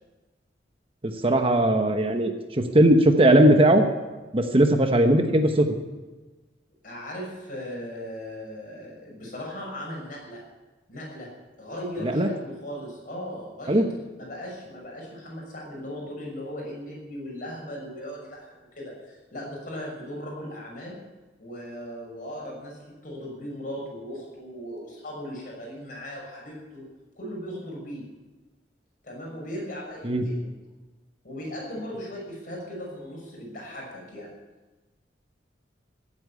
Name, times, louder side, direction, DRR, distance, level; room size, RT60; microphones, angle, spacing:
voice 1, 1.0-3.8 4.3-5.7 12.0-12.3 13.7-13.9 30.0-30.2, right 1 dB, 30° right, 6 dB, 1.0 m, -19 dB
voice 2, 6.8-10.4 10.9-11.3 11.6-13.8 14.2-21.0 21.4-26.8 27.1-28.0 29.0-30.5 31.2-34.3, equal, 50° left, -2 dB, 6.2 m, -38 dB
15.0 x 8.8 x 8.4 m, 1.2 s
head